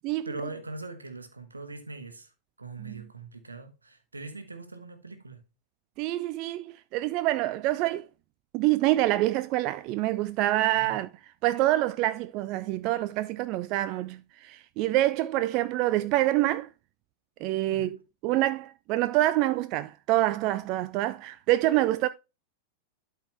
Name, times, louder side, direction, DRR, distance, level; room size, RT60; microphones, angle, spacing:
voice 1, 0.2-2.3 2.6-5.4 10.7-11.0 17.7-18.0, right 2 dB, 80° right, 1.3 m, -41 dB
voice 2, 6.0-8.1 8.5-11.1 11.4-16.7 17.4-18.0 18.2-22.1, right 16 dB, 40° right, 0.4 m, -26 dB
12.0 x 4.6 x 3.3 m
figure-of-eight pair, 90°, 0 cm